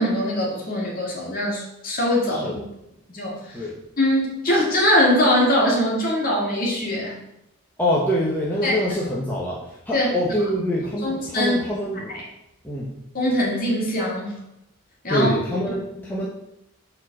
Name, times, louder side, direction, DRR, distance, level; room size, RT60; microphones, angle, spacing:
voice 1, 0.0-2.6 3.1-3.5 4.0-7.1 8.6-8.8 9.9-10.1 11.0-11.6 13.1-14.4 15.0-15.3 15.9-16.0, left 1 dB, 40° left, -3 dB, 2.4 m, -22 dB
voice 2, 7.8-12.2 12.6-12.9 15.1-16.3, equal, 10° left, -6 dB, 1.0 m, -25 dB
7.3 x 4.5 x 5.9 m, 0.85 s
head